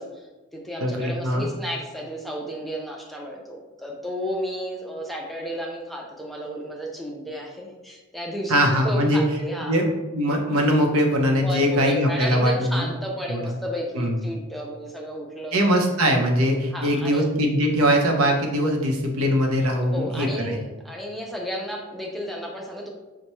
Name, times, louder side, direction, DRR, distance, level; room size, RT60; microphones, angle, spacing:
voice 1, 0.0-9.8 11.4-15.6 16.7-17.3 19.9-22.9, equal, ahead, -1 dB, 0.4 m, -33 dB
voice 2, 0.8-1.5 8.5-9.2 9.6-9.9 10.1-12.9 13.3-13.6 13.9-14.2 15.5-20.6, equal, 80° right, 1 dB, 0.7 m, -21 dB
5.4 x 2.2 x 3.0 m, 1.2 s
head